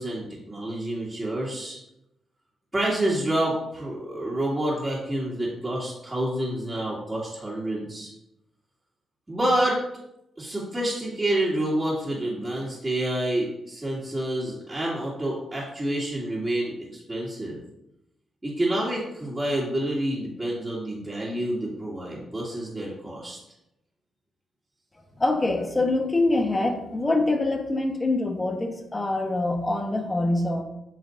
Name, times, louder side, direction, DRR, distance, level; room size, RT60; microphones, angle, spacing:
voice 1, 0.0-1.8 2.7-8.1 9.3-9.8 10.4-17.6 18.4-23.4, right 1 dB, 15° right, -9 dB, 2.4 m, -28 dB
voice 2, 25.2-30.6, left 2 dB, 20° left, 4 dB, 1.2 m, -24 dB
9.3 x 6.2 x 2.7 m, 0.86 s
cardioid pair, 85°, 0 cm